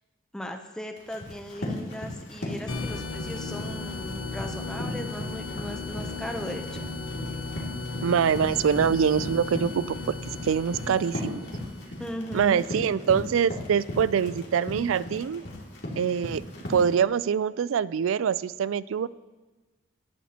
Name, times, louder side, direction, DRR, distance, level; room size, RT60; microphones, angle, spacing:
voice 1, 0.3-6.9 12.0-12.6, left 1 dB, 5° left, 3 dB, 0.6 m, -38 dB
Run, 1.0-17.0, left 1 dB, 55° left, 2.5 m, -37 dB
sound 1, 2.7-12.0, left 3 dB, 80° left, 0.9 m, -36 dB
voice 2, 8.0-10.1 10.4-11.5 12.3-15.4 16.0-16.4 16.7-19.1, right 7 dB, 80° right, 18 dB, 0.3 m, -24 dB
18.0 x 11.5 x 2.9 m, 1.2 s
head